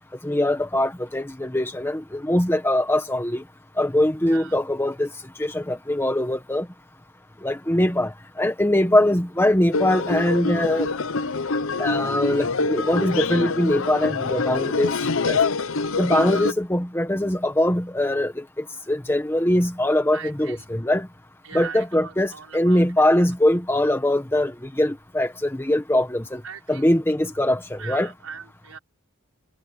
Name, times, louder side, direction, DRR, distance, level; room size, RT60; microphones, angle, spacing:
voice 1, 0.2-3.4 3.8-5.1 5.4-6.7 7.4-10.9 11.8-15.0 15.3-15.4 16.0-21.1 21.5-26.4 26.7-28.1, left 1 dB, 10° left, 1.4 m, -22 dB
voice 2, 4.2-4.6 20.1-20.6 21.4-22.8 26.4-26.9 27.8-28.8, right 6 dB, 90° right, 5.1 m, -39 dB
sound 1, 9.7-16.5, left 4 dB, 70° left, 0.8 m, -25 dB
head